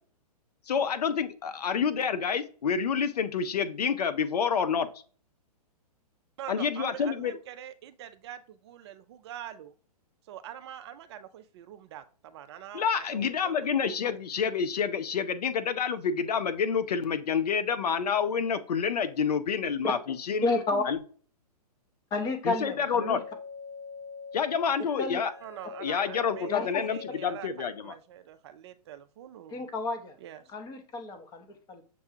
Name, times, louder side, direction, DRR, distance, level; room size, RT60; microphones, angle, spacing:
voice 1, 0.7-4.9 6.5-7.3 12.7-20.5 20.9-21.0 22.4-23.2 24.3-25.3 25.8-28.0, left 6 dB, 75° left, 11 dB, 0.6 m, -28 dB
voice 2, 6.4-9.7 10.3-14.1 25.4-29.7 30.2-30.4, right 10 dB, 45° right, 10 dB, 0.4 m, -44 dB
voice 3, 20.4-20.8 22.1-23.2 25.0-25.2 26.5-26.9 29.5-30.2 30.5-31.8, left 3 dB, 20° left, 7 dB, 0.7 m, -31 dB
sound 1, 22.7-27.6, left 5 dB, 45° left, 1.8 m, -44 dB
6.7 x 2.3 x 2.7 m, 0.42 s
hypercardioid pair, 125°, 20 cm